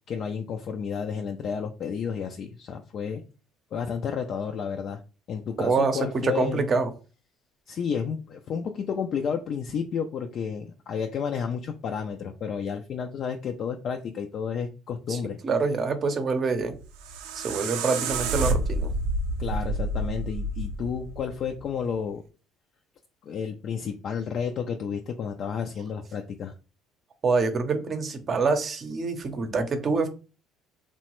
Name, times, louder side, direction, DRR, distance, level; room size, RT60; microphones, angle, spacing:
voice 1, 0.1-3.2 3.7-5.0 5.3-6.7 7.7-15.4 19.4-22.2 23.2-26.5, left 6 dB, 55° left, 4 dB, 0.3 m, -31 dB
voice 2, 5.6-6.9 15.1-16.7 17.3-18.9 27.2-30.1, right 4 dB, 45° right, 8 dB, 0.6 m, -26 dB
sound 1, 16.7-21.8, right 2 dB, 85° right, 0.4 m, -29 dB
2.9 x 2.1 x 3.0 m, 0.33 s
supercardioid pair, 75°, 0 cm